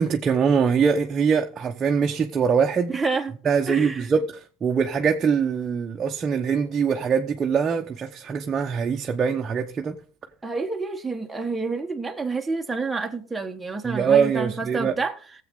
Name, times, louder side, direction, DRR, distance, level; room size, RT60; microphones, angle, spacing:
voice 1, 0.0-3.0 3.4-10.0 13.8-14.9, right 6 dB, 35° right, 1.0 m, -23 dB
voice 2, 2.9-3.4 3.7-4.1 10.4-15.2, right 3 dB, 10° right, 1.5 m, -28 dB
17.0 x 7.6 x 3.9 m
supercardioid pair, 100°, 0 cm